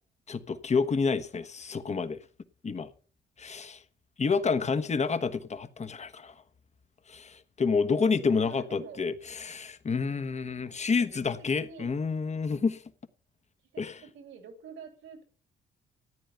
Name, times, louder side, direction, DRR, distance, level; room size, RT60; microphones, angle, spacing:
voice 1, 0.3-2.2 2.6-2.9 3.4-3.8 4.2-6.4 7.1-12.8 13.8-14.0, left 5 dB, 35° left, 1.2 m, -29 dB
voice 2, 7.7-9.1 11.0-11.2 11.5-12.0 13.7-15.2, right 6 dB, 75° right, 3.1 m, -48 dB
14.0 x 9.2 x 5.6 m
cardioid pair, 90°, 20 cm